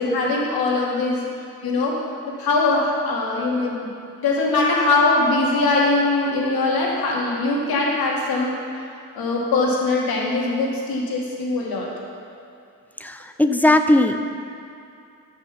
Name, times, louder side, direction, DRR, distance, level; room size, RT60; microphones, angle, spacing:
voice 1, 0.0-1.2 1.6-2.0 2.3-3.9 4.2-8.5 9.1-11.9, left 3 dB, 85° left, -3 dB, 2.3 m, -21 dB
voice 2, 13.0-14.3, left 1 dB, 5° left, 7 dB, 0.4 m, -18 dB
13.0 x 6.0 x 5.6 m, 2.6 s
cardioid pair, 125°, 35 cm